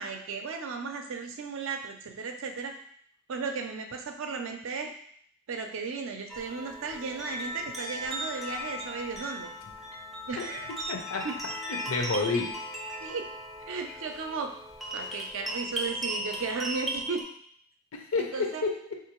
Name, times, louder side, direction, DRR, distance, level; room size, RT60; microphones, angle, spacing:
voice 1, 0.0-2.7 3.3-4.9 5.5-9.5 10.3-10.7 11.2-11.3 13.0-13.3 13.7-14.6 14.9-17.3 18.2-18.7, right 4 dB, 65° right, 5 dB, 0.4 m, -35 dB
sound 1, 6.3-17.2, equal, ahead, 0.4 m, -37 dB
voice 2, 10.9-11.2 11.7-12.6 17.9-18.9, left 3 dB, 75° left, 3 dB, 0.6 m, -30 dB
3.5 x 2.5 x 2.9 m, 0.64 s
head